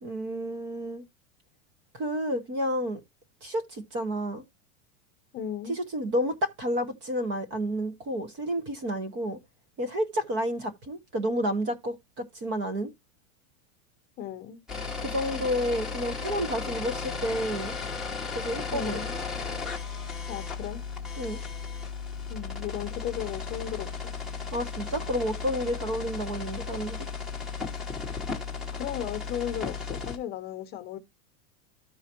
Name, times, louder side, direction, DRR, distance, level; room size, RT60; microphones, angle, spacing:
voice 1, 0.0-1.0 1.9-3.0 3.4-4.4 5.7-9.4 9.8-12.9 15.0-17.7 18.3-19.0 21.2-21.4 24.5-27.1, equal, 25° right, 1.1 m, -30 dB
voice 2, 5.3-5.7 14.2-14.6 18.7-19.1 20.3-20.8 22.3-24.1 28.7-31.0, left 10 dB, 25° left, 1.0 m, -35 dB
sound 1, 14.7-30.2, left 5 dB, ahead, 1.2 m, -35 dB
14.0 x 4.8 x 2.9 m
supercardioid pair, 170°, 43 cm